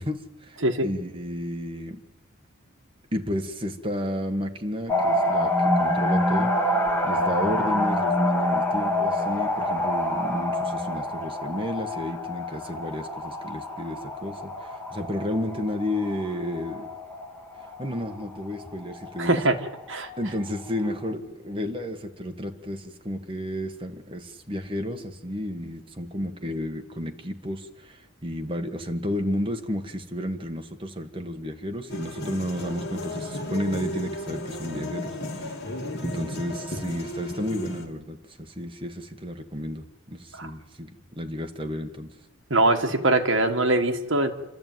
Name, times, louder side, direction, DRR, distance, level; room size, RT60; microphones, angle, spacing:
voice 1, 0.0-2.0 3.1-6.5 7.0-16.9 17.8-19.4 20.2-35.6 36.0-42.2, equal, 25° right, 4 dB, 1.6 m, -32 dB
sound 1, 4.9-20.8 21.1-21.2, left 1 dB, 10° left, 2.1 m, -27 dB
voice 2, 19.2-19.6 19.9-20.1 40.4-40.5 42.5-44.3, right 2 dB, 60° right, 5 dB, 1.8 m, -22 dB
sound 2, 31.9-37.9, left 1 dB, 50° left, 2.9 m, -34 dB
28.0 x 13.0 x 9.3 m, 1.1 s
head